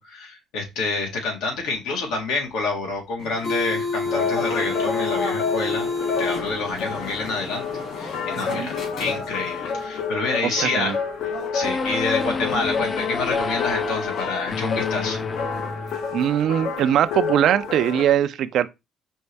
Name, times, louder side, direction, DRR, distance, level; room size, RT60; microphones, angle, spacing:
voice 1, 0.0-5.9 6.2-7.7 7.9-10.9 11.2-15.2, left 3 dB, 90° left, 1.8 m, -28 dB
sound 1, 3.2-9.6, left 3 dB, 55° left, 2.1 m, -30 dB
sound 2, 4.0-18.1, left 5 dB, 70° left, 0.9 m, -29 dB
voice 2, 10.4-11.0 16.1-18.7, right 10 dB, 65° right, 0.4 m, -21 dB
sound 3, 11.6-16.3, left 4 dB, 30° left, 0.3 m, -30 dB
5.2 x 2.7 x 3.3 m
cardioid pair, 120°, 0 cm